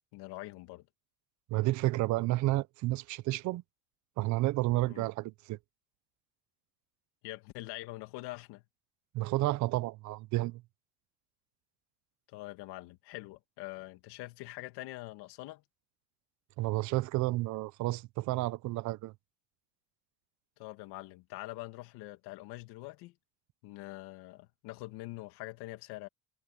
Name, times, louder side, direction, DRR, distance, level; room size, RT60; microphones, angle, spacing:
voice 1, 0.1-0.9 4.9-5.1 7.2-8.6 12.3-15.6 20.6-23.1 23.6-26.1, left 19 dB, 80° left, 2.1 m, -44 dB
voice 2, 1.5-3.6 4.2-5.6 9.1-10.6 16.6-19.1, right 18 dB, 50° right, 0.5 m, -31 dB
cardioid pair, 180°, 39 cm